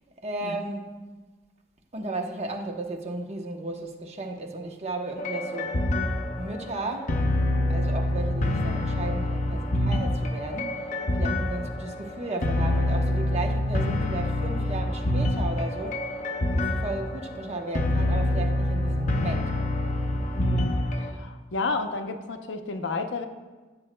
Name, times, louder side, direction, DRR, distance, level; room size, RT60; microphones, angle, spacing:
voice 1, 0.2-0.9 1.9-5.8 6.3-7.2 7.7-16.1 16.5-19.6, right 2 dB, 35° right, 3 dB, 0.9 m, -34 dB
sound 1, 5.2-21.1, left 1 dB, 45° left, 0.7 m, -26 dB
voice 2, 20.3-23.3, left 3 dB, 75° left, 6 dB, 0.7 m, -32 dB
15.5 x 7.5 x 2.2 m, 1.3 s
head